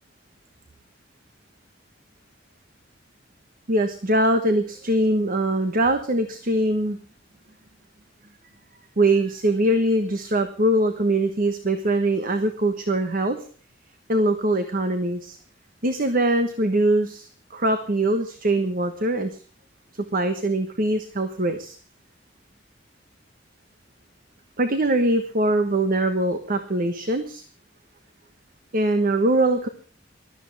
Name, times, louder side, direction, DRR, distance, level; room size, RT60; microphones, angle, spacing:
voice 1, 3.7-7.0 9.0-13.4 14.1-15.4 15.8-19.4 19.9-21.8 24.6-27.4 28.7-29.7, right 1 dB, 50° right, 8 dB, 1.3 m, -22 dB
20.5 x 13.0 x 3.5 m, 0.40 s
head